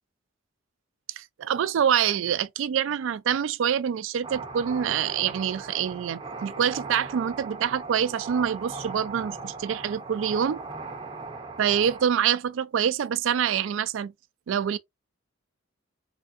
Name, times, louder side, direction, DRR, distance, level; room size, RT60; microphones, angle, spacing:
voice 1, 1.2-10.6 11.6-14.1 14.5-14.8, right 8 dB, 70° right, 0.3 m, -26 dB
sound 1, 4.2-12.0, right 4 dB, 25° right, 0.7 m, -38 dB
3.5 x 3.3 x 2.5 m
head